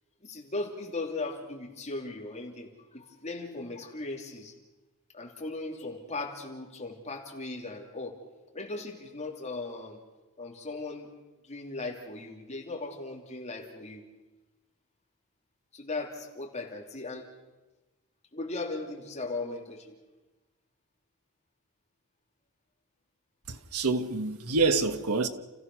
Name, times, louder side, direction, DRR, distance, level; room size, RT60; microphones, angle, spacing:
voice 1, 0.2-4.5 5.1-8.2 8.5-10.0 10.4-11.1 11.5-14.0 15.7-17.3 18.3-19.9, left 3 dB, 30° left, 3.1 m, -38 dB
voice 2, 23.5-25.3, right 3 dB, 80° right, 1.3 m, -27 dB
30.0 x 15.5 x 6.2 m
head